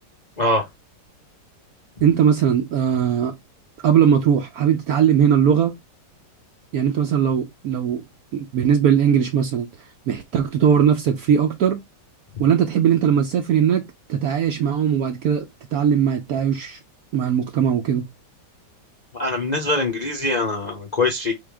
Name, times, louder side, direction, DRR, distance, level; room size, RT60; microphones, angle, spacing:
voice 1, 0.4-0.7 19.1-21.3, left 2 dB, 55° left, 0.4 m, -23 dB
voice 2, 2.0-3.4 3.8-5.8 6.7-8.0 8.3-9.7 10.1-11.8 12.4-13.8 14.1-16.8 17.1-18.1, right 8 dB, 65° right, 1.0 m, -19 dB
3.7 x 3.4 x 3.4 m
omnidirectional pair, 1.9 m